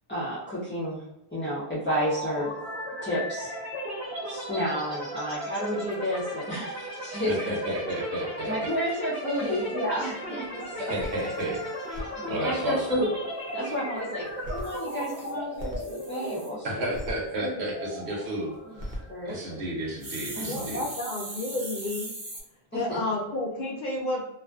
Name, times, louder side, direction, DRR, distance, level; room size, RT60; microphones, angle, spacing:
voice 1, 0.1-1.0 1.3-2.5 3.0-3.5 4.3-7.8 8.5-10.9 12.1-13.1 13.5-16.9 17.4-17.6 19.1-19.6 20.3-20.7 22.7-23.0, equal, 15° left, -10 dB, 0.4 m, -31 dB
sound 1, 1.9-19.6, equal, 15° right, 0.7 m, -36 dB
voice 2, 7.1-8.7 9.4-9.5 10.7-12.0 12.3-12.8 16.6-18.5 18.9-19.0 19.2-20.8, right 1 dB, 80° right, -2 dB, 1.1 m, -32 dB
sound 2, 9.8-9.9 10.3-10.4 10.6-10.7 11.0-12.0 14.3-16.5 16.9-17.1 18.6-19.0 20.0-22.4, right 1 dB, 55° right, 0.8 m, -38 dB
voice 3, 20.4-22.1 22.7-24.2, left 2 dB, 55° left, -2 dB, 0.6 m, -31 dB
2.4 x 2.4 x 2.3 m, 0.86 s
omnidirectional pair, 1.1 m